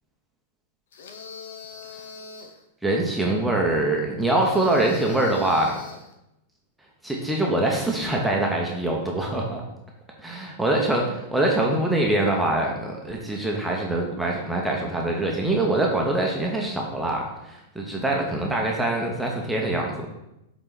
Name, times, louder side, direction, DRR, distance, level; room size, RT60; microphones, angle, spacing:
sound 1, 0.9-2.6 4.4-6.1, left 5 dB, 80° left, 0.9 m, -42 dB
voice 1, 2.8-5.8 7.0-9.6 10.2-20.1, right 1 dB, 5° right, -1 dB, 0.9 m, -24 dB
7.7 x 4.0 x 3.9 m, 0.87 s
supercardioid pair, 150°, 0 cm